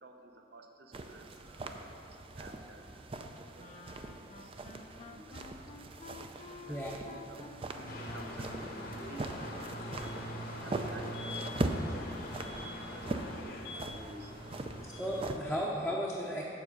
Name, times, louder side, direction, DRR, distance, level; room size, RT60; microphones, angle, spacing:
voice 1, 0.0-3.1 3.4-4.1 4.4-5.7 6.5-9.3 9.7-10.2 10.5-11.3 11.5-14.6 14.9-15.0, right 2 dB, 60° right, 4 dB, 0.8 m, -53 dB
sound 1, 0.9-15.4, right 2 dB, 30° right, 0.4 m, -41 dB
Wind instrument woodwind instrument, 3.6-10.2, left 3 dB, 40° left, 0.5 m, -52 dB
voice 2, 6.7-7.0 14.8-16.5, equal, ahead, -5 dB, 0.7 m, -35 dB
sound 2, 7.9-15.5, left 1 dB, 55° left, 0.9 m, -42 dB
7.6 x 7.4 x 5.2 m, 2.6 s
head